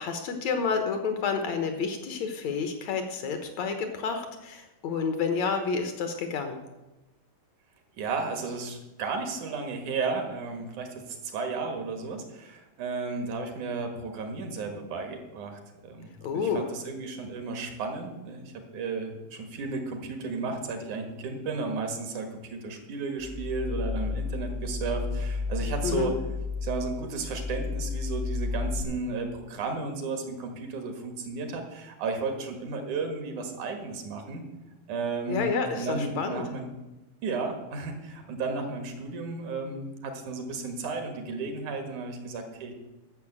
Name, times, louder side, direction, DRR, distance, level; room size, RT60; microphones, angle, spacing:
voice 1, 0.0-6.6 16.2-16.6 25.8-26.1 35.3-36.4, left 5 dB, 65° left, 6 dB, 2.2 m, -29 dB
voice 2, 8.0-26.1 26.6-34.4 34.9-36.7 37.2-42.7, right 4 dB, 70° right, 5 dB, 2.9 m, -34 dB
sound 1, 23.2-28.8, left 4 dB, 30° left, 1.2 m, -32 dB
12.0 x 7.3 x 7.3 m, 1.0 s
omnidirectional pair, 3.7 m